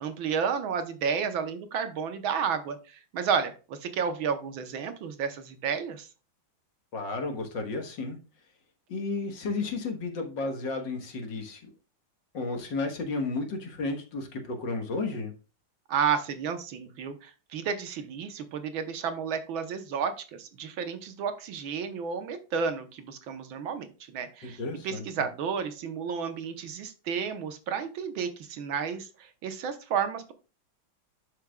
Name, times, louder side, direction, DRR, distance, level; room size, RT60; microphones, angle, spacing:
voice 1, 0.0-6.1 15.9-24.6 24.8-30.3, right 6 dB, 75° right, 8 dB, 1.7 m, -31 dB
voice 2, 6.9-8.2 8.9-11.7 12.3-15.3 24.4-25.1, left 3 dB, 60° left, 4 dB, 2.0 m, -33 dB
11.5 x 5.9 x 2.3 m, 0.33 s
omnidirectional pair, 2.3 m